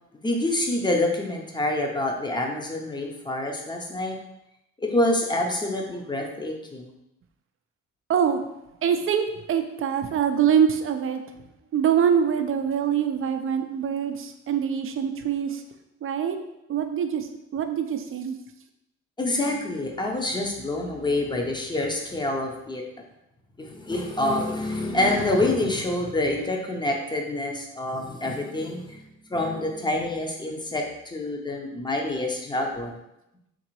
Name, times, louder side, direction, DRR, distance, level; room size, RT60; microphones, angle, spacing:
voice 1, 0.2-4.2 4.8-6.9 19.2-22.8 23.6-33.0, left 1 dB, 15° left, 2 dB, 0.6 m, -27 dB
voice 2, 8.8-11.2 11.7-15.6 16.0-16.4 16.7-17.3 17.5-18.3, right 8 dB, 45° right, 7 dB, 0.4 m, -24 dB
3.9 x 2.6 x 3.0 m, 0.85 s
cardioid pair, 90°, 30 cm